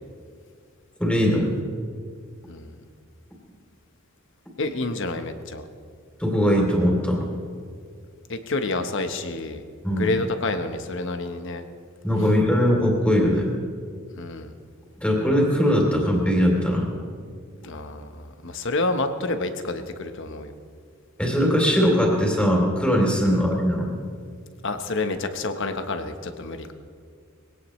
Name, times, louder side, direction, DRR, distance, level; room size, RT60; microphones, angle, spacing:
voice 1, 1.0-1.5 6.2-7.2 9.8-10.1 12.0-13.5 15.0-16.9 21.2-23.9, equal, 5° left, -1 dB, 3.1 m, -20 dB
voice 2, 4.6-5.6 8.3-9.7 10.0-11.6 14.2-14.5 17.6-20.5 23.2-23.4 24.6-26.7, left 2 dB, 65° left, 8 dB, 1.1 m, -29 dB
21.5 x 17.0 x 3.2 m, 2.1 s
head